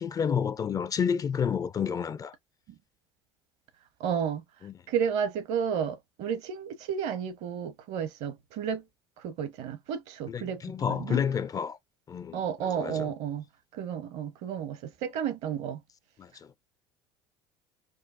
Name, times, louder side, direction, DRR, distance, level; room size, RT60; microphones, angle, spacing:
voice 1, 0.0-2.3 4.6-4.7 10.3-11.8 12.1-13.1 16.2-16.5, left 7 dB, 30° left, 0.4 m, -30 dB
voice 2, 4.0-4.4 4.9-8.9 9.2-10.6 10.9-11.2 12.3-13.4 13.7-15.8, right 8 dB, 60° right, 0.8 m, -32 dB
5.2 x 2.0 x 2.5 m
hypercardioid pair, 65°, 13 cm